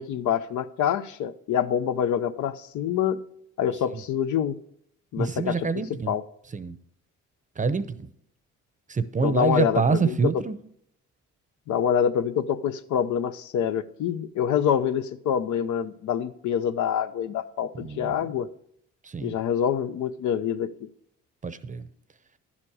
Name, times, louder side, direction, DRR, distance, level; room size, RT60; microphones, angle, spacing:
voice 1, 0.0-3.2 3.6-4.6 5.1-5.7 6.1-6.2 9.2-10.3 11.7-18.5 19.2-20.9, left 8 dB, 75° left, 0.7 m, -26 dB
voice 2, 5.2-6.1 6.5-6.7 7.6-8.1 8.9-10.6 17.8-18.2 19.0-19.3 21.4-21.9, right 5 dB, 25° right, 0.7 m, -26 dB
11.0 x 7.4 x 4.8 m
cardioid pair, 90°, 30 cm